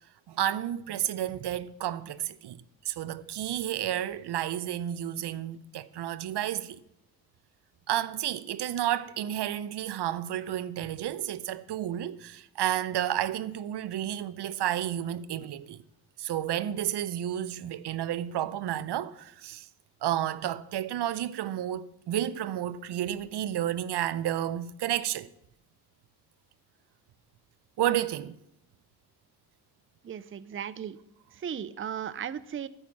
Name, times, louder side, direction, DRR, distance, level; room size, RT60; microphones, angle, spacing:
voice 1, 0.3-6.8 7.9-15.8 16.2-19.7 20.0-25.3 27.8-28.4, right 11 dB, 80° right, 0.6 m, -31 dB
voice 2, 30.0-31.0 31.4-32.7, right 8 dB, 30° right, 0.5 m, -36 dB
13.0 x 5.3 x 7.3 m
cardioid pair, 100°, 40 cm